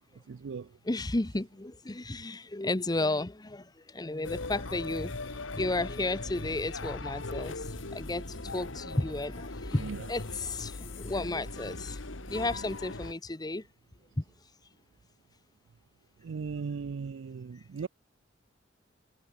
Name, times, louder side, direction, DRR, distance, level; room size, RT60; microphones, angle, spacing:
voice 1, 0.3-0.8 9.8-10.1 16.2-17.9, right 5 dB, 80° right, 0.4 m, -37 dB
voice 2, 0.8-12.0 12.3-13.7 14.2-14.3, left 2 dB, 20° left, 0.9 m, -33 dB
sound 1, 4.2-13.1, left 3 dB, 85° left, 1.8 m, -40 dB
sound 2, 5.4-12.3, equal, 55° right, 6.7 m, -50 dB
head